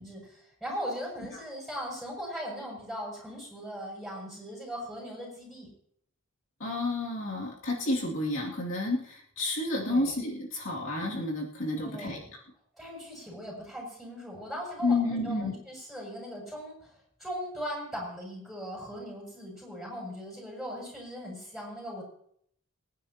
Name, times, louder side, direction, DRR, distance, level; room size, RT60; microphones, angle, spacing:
voice 1, 0.0-5.7 9.8-10.1 11.7-12.3 12.7-16.9 17.2-22.0, equal, ahead, -3 dB, 7.1 m, -39 dB
voice 2, 6.6-12.2 14.8-15.5, left 2 dB, 60° left, -3 dB, 2.7 m, -30 dB
27.0 x 10.5 x 3.0 m, 0.67 s
head